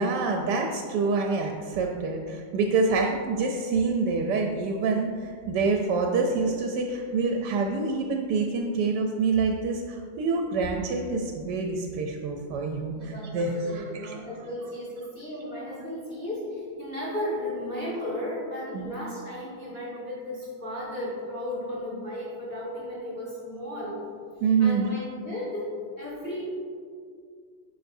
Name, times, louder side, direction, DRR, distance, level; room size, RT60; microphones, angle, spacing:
voice 1, 0.0-14.2 18.7-18.9 24.4-24.9, right 4 dB, 75° right, 2 dB, 1.1 m, -26 dB
voice 2, 12.9-24.0 24.6-25.7 26.0-26.5, left 1 dB, 5° left, -8 dB, 1.2 m, -35 dB
9.1 x 5.7 x 2.6 m, 2.2 s
omnidirectional pair, 2.0 m